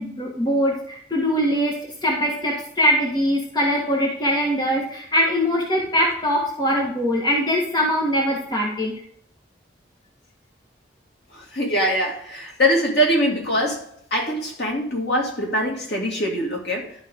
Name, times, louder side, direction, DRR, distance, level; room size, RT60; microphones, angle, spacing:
voice 1, 0.0-8.9, equal, 20° left, -2 dB, 1.6 m, -22 dB
voice 2, 11.5-16.9, equal, 60° left, 0 dB, 2.5 m, -23 dB
12.0 x 5.5 x 3.7 m, 0.63 s
head